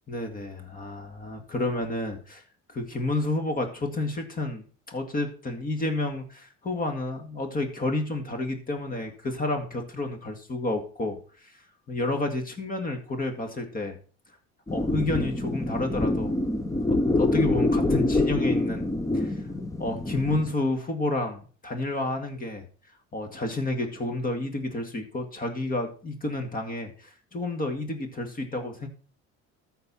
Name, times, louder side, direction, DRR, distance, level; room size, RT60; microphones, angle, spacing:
voice 1, 0.1-2.4 2.7-11.2 11.4-11.5 11.9-14.0 14.7-16.4 16.9-18.9 19.1-19.4 19.8-22.7 23.1-28.9, left 2 dB, 30° left, 6 dB, 2.1 m, -30 dB
sound 1, 14.7-20.5, left 2 dB, 10° left, 0.8 m, -26 dB
13.5 x 4.6 x 5.6 m, 0.40 s
cardioid pair, 115°, 30 cm